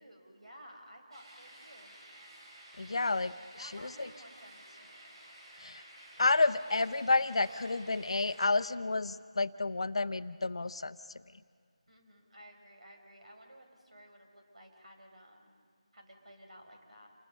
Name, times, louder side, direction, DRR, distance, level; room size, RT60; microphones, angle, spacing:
voice 1, 0.0-1.9 3.6-5.2 11.9-15.6 15.9-17.1, equal, 75° right, 2 dB, 5.6 m, -55 dB
sound 1, 1.1-8.4, right 1 dB, 50° right, 6.6 m, -53 dB
voice 2, 2.8-3.3 3.6-4.1 5.6-5.8 6.2-11.0, left 3 dB, 55° left, 12 dB, 0.7 m, -30 dB
28.5 x 21.5 x 5.5 m, 2.1 s
figure-of-eight pair, 165°, 4 cm